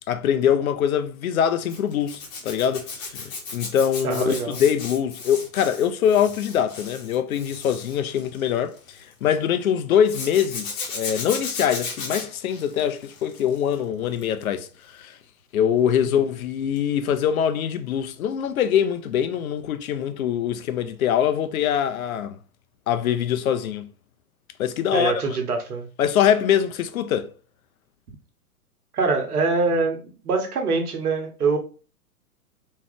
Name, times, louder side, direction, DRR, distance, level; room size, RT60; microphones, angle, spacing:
voice 1, 0.1-15.2 15.5-22.4 22.9-23.9 24.6-25.4 26.0-27.3, left 9 dB, 65° left, 0.7 m, -23 dB
Zipper (clothing), 1.7-9.1 10.1-13.7 14.1-14.4 16.8-16.9 17.2-17.3, left 4 dB, 40° left, 1.7 m, -35 dB
voice 2, 4.0-4.6 16.0-16.1 24.9-25.9 28.9-31.6, right 4 dB, 80° right, 1.3 m, -24 dB
3.7 x 3.2 x 3.4 m
hypercardioid pair, 125°, 45 cm